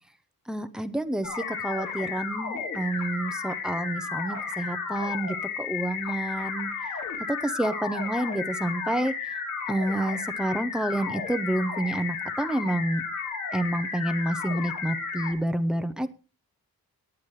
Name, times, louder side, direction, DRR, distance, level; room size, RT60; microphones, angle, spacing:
voice 1, 0.5-6.7 7.3-9.1 9.7-13.0 13.5-16.1, right 1 dB, ahead, 9 dB, 0.7 m, -29 dB
sound 1, 1.2-15.3, left 5 dB, 55° left, 3.3 m, -33 dB
18.5 x 9.2 x 3.2 m, 0.34 s
wide cardioid pair, 170°, 35 cm